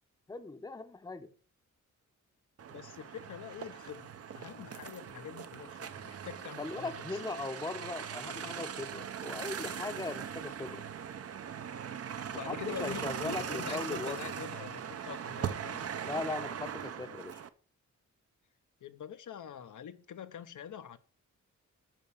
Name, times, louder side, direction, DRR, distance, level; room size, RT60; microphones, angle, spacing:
voice 1, 0.3-1.3 6.6-10.8 12.5-14.2 16.0-17.4, left 3 dB, 10° left, 0.8 m, -39 dB
sound 1, 2.6-17.5, right 8 dB, 50° right, 0.7 m, -40 dB
voice 2, 2.7-4.1 4.3-7.2 12.3-15.9 18.8-21.0, left 9 dB, 75° left, 0.8 m, -45 dB
9.1 x 5.9 x 6.9 m
wide cardioid pair, 175°, 31 cm